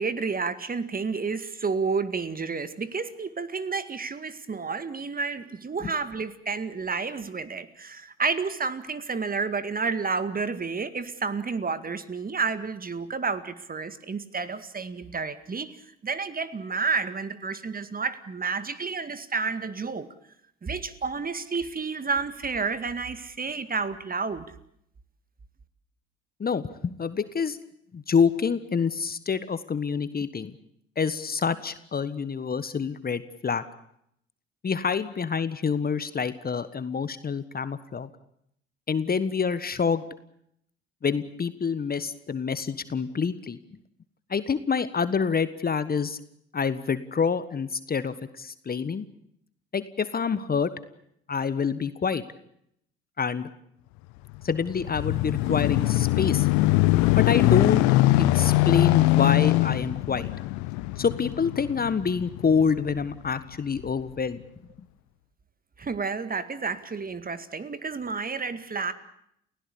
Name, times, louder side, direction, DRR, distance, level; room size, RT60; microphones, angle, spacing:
voice 1, 0.0-15.8 16.0-20.1 20.6-24.4 65.8-68.9, right 4 dB, 30° right, 13 dB, 2.1 m, -30 dB
voice 2, 26.4-27.6 27.9-30.5 31.0-33.6 34.6-38.1 38.9-40.0 41.0-43.6 44.3-46.2 46.5-49.0 49.7-50.7 51.3-52.2 53.2-53.5 54.4-56.5 57.1-57.8 58.2-60.3 61.0-64.4, left 6 dB, 30° left, 14 dB, 1.4 m, -27 dB
sound 1, 54.4-63.2 63.8-63.9, left 18 dB, 65° left, 1.0 m, -22 dB
29.5 x 16.5 x 8.6 m, 0.73 s
figure-of-eight pair, 50°, 31 cm